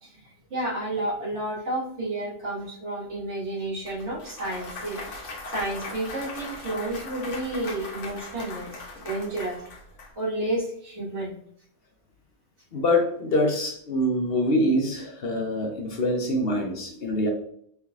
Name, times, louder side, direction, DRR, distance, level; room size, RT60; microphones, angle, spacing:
voice 1, 0.0-8.8 9.0-9.6 10.2-11.4, right 1 dB, 70° right, -6 dB, 1.9 m, -31 dB
Clapping / Cheering / Applause, 3.9-10.1, left 2 dB, 80° left, 1.2 m, -39 dB
voice 2, 12.7-17.3, left 1 dB, 60° left, 2 dB, 0.9 m, -25 dB
4.2 x 3.5 x 2.4 m, 0.66 s
omnidirectional pair, 1.2 m